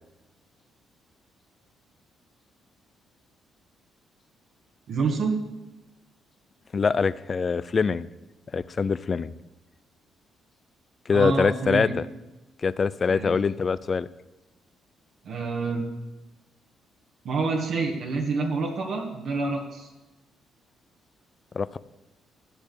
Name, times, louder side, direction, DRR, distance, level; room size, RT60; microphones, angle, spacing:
voice 1, 4.9-5.4 11.1-11.9 13.1-13.3 15.2-15.9 17.2-19.9, right 4 dB, 70° right, 0 dB, 1.9 m, -27 dB
voice 2, 6.7-8.1 8.5-9.4 11.1-12.1 12.6-14.1 21.5-21.8, left 5 dB, 40° left, 17 dB, 0.5 m, -24 dB
13.0 x 6.7 x 8.5 m, 1.1 s
cardioid pair, 90°, 0 cm